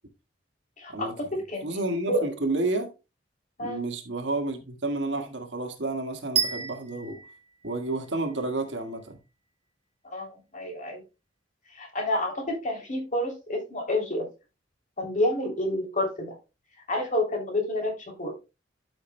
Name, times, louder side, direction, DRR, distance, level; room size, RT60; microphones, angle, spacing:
voice 1, 0.8-1.1 1.5-1.7 2.1-2.3 3.6-3.8 10.1-11.0 11.7-14.2 15.0-16.3 16.9-18.3, left 1 dB, 45° left, 3.0 m, -29 dB
voice 2, 1.6-2.9 3.6-7.2 7.6-9.2, right 2 dB, 75° right, 1.8 m, -30 dB
sound 1, 6.3-8.4, right 7 dB, 35° right, 0.9 m, -30 dB
12.0 x 6.3 x 2.2 m
head